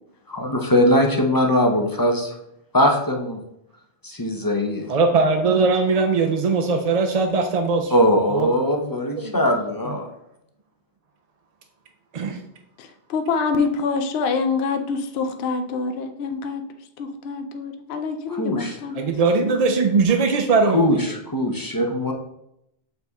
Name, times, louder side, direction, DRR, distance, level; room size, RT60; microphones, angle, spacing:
voice 1, 0.3-2.4 2.7-3.4 4.0-4.9 7.9-10.1 18.3-18.8 20.7-22.1, left 1 dB, 25° left, 2 dB, 0.6 m, -21 dB
voice 2, 4.9-7.9 8.3-8.5 9.2-9.4 9.9-10.0 12.1-12.4 19.0-21.1, right 4 dB, 45° right, 4 dB, 0.5 m, -20 dB
voice 3, 12.8-16.6 17.0-19.1, left 4 dB, 65° left, 6 dB, 0.8 m, -26 dB
6.8 x 4.1 x 3.5 m, 0.80 s
omnidirectional pair, 1.2 m